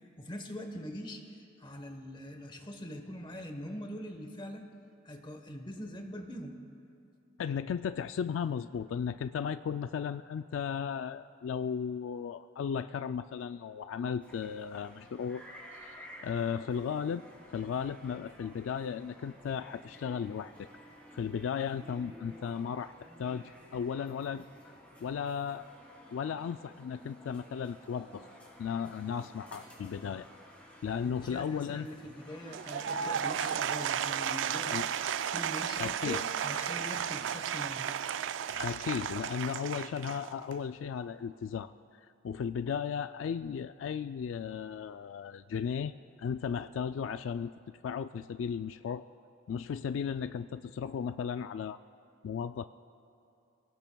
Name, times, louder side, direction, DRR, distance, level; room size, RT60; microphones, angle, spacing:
voice 1, 0.2-4.7 5.0-6.6 31.0-35.0 35.3-37.9, equal, 25° left, 5 dB, 1.1 m, -43 dB
voice 2, 7.4-15.4 15.8-17.2 17.5-20.7 21.1-22.9 23.2-24.7 25.0-25.7 26.1-28.3 28.6-30.3 30.8-31.9 34.7-34.9 35.8-36.2 38.5-41.7 42.2-45.9 46.2-47.5 47.8-49.0 49.5-51.8 52.2-52.7, left 7 dB, 85° left, 11 dB, 0.3 m, -35 dB
sound 1, 14.2-34.1, equal, 5° left, 2.8 m, -53 dB
Applause / Crowd, 32.5-40.7, right 8 dB, 70° right, 0.3 m, -34 dB
28.0 x 17.5 x 2.3 m, 2.8 s
head